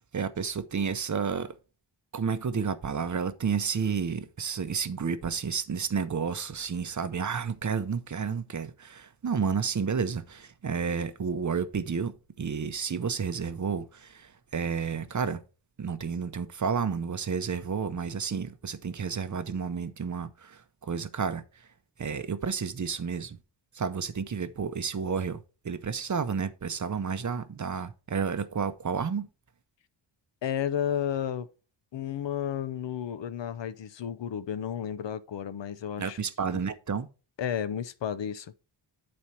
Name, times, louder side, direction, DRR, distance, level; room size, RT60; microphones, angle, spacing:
voice 1, 0.1-1.5 2.1-15.4 15.8-21.7 22.0-23.4 23.7-29.3 36.0-37.1, right 6 dB, 40° right, 0.7 m, -31 dB
voice 2, 30.4-31.5 31.9-36.2 36.5-36.6 37.4-38.5, left 9 dB, 70° left, 0.7 m, -32 dB
9.7 x 4.3 x 4.5 m
wide cardioid pair, 115°, 46 cm